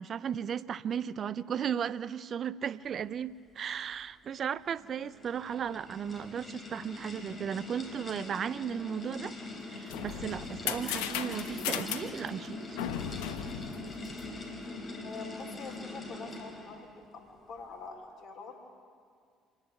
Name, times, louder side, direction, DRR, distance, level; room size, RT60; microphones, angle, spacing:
voice 1, 0.0-9.3 9.7-12.8, right 8 dB, 50° right, 18 dB, 0.5 m, -35 dB
sound 1, 4.7-16.8, left 2 dB, 25° left, 4.3 m, -43 dB
sound 2, 9.6-14.6, left 10 dB, 80° left, 1.0 m, -37 dB
voice 2, 15.0-18.7, left 4 dB, 55° left, 0 dB, 3.7 m, -45 dB
27.0 x 10.5 x 9.1 m, 2.1 s
hypercardioid pair, 60°, 0 cm